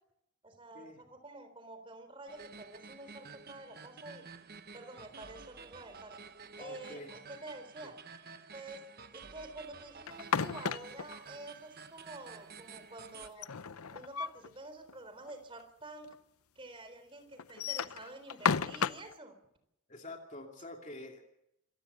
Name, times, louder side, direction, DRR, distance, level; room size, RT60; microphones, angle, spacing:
voice 1, 0.4-4.2 4.7-6.2 6.6-8.0 8.5-8.8 9.1-13.5 13.9-16.1 16.6-19.3, right 2 dB, 25° right, 8 dB, 3.8 m, -49 dB
sound 1, 2.3-13.3, right 5 dB, 45° right, 1.1 m, -51 dB
voice 2, 6.6-7.1 19.9-21.2, left 2 dB, 35° left, 2 dB, 2.7 m, -47 dB
sound 2, 10.1-11.1 13.2-14.5 14.9-15.0 15.3-15.4 16.1-16.2 17.4-19.1, left 6 dB, 85° left, 0.8 m, -33 dB
27.0 x 16.0 x 6.8 m, 0.80 s
head